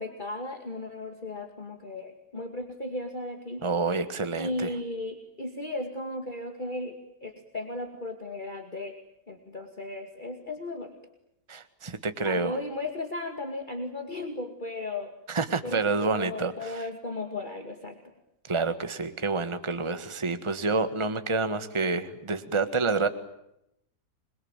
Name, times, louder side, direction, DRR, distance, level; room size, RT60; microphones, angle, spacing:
voice 1, 0.0-3.7 4.3-9.0 9.3-11.0 12.2-15.1 15.6-18.0, left 2 dB, 30° left, 4 dB, 2.4 m, -36 dB
voice 2, 3.6-4.7 11.5-12.5 15.3-16.8 18.5-23.1, right 3 dB, 20° right, 10 dB, 1.5 m, -28 dB
27.5 x 22.5 x 8.9 m, 0.81 s
omnidirectional pair, 1.8 m